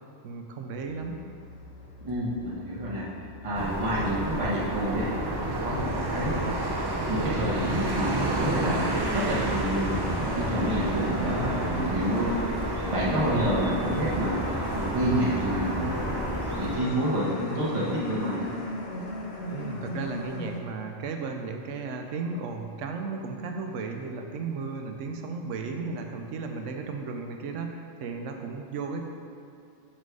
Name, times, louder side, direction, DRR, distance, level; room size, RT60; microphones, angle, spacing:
voice 1, 0.2-1.2 19.5-29.0, right 4 dB, 80° right, 3 dB, 1.0 m, -35 dB
sound 1, 0.9-20.6, left 3 dB, 60° left, 0.9 m, -38 dB
voice 2, 2.0-3.1 3.4-5.1 5.6-6.4 7.1-8.8 9.1-10.0 10.3-12.3 12.9-14.4 14.7-15.8 16.6-18.4, right 1 dB, 25° right, -7 dB, 1.2 m, -28 dB
sound 2, 3.5-16.8, right 2 dB, 40° right, 0.3 m, -30 dB
6.4 x 4.3 x 4.7 m, 2.4 s
omnidirectional pair, 1.3 m